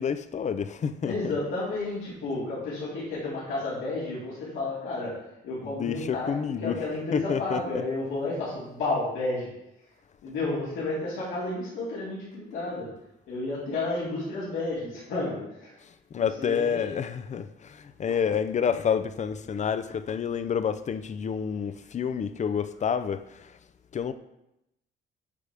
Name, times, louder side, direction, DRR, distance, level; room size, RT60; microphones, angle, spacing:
voice 1, 0.0-1.3 5.8-6.7 7.1-7.6 16.1-23.6 23.9-24.1, left 7 dB, 35° left, 0.5 m, -29 dB
voice 2, 1.0-9.5 10.2-12.9 13.3-15.8 16.1-17.0, left 2 dB, 85° left, 2.3 m, -31 dB
8.4 x 5.1 x 3.4 m
cardioid pair, 90°, 20 cm